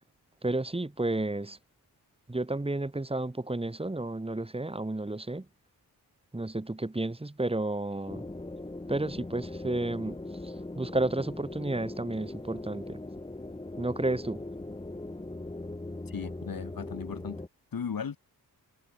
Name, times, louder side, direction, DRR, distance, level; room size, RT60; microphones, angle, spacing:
voice 1, 0.4-1.6 2.3-5.5 6.3-8.2 8.9-10.2 10.4-13.0 13.8-14.4, right 2 dB, 15° right, 5.6 m, -32 dB
sound 1, 8.1-17.5, left 2 dB, 15° left, 2.4 m, -40 dB
voice 2, 16.1-17.4 17.7-18.2, left 6 dB, 60° left, 4.9 m, -36 dB
wide cardioid pair, 135°, 38 cm